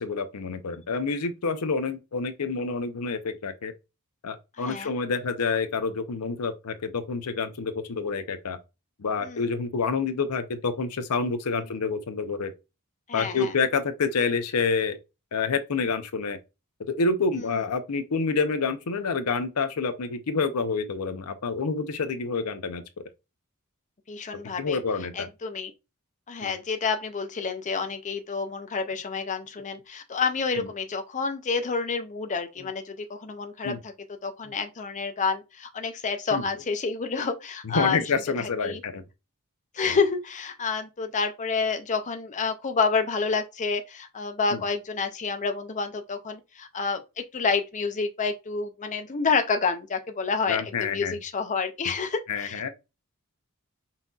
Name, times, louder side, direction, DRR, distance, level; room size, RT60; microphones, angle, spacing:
voice 1, 0.0-3.7 4.2-8.6 9.0-12.5 13.1-15.0 15.3-16.4 16.9-22.8 24.6-25.3 26.4-26.5 30.5-30.7 33.6-33.8 34.4-34.5 36.3-36.5 37.6-39.0 39.8-40.0 44.5-44.6 50.5-51.2 52.3-52.7, left 4 dB, 80° left, 0.6 m, -28 dB
voice 2, 4.6-4.9 9.2-9.5 13.1-13.5 24.1-24.8 25.1-25.7 26.3-33.9 34.2-38.0 38.4-38.8 39.7-47.0 47.3-52.7, left 5 dB, 35° left, 0.5 m, -29 dB
5.6 x 2.7 x 2.3 m
head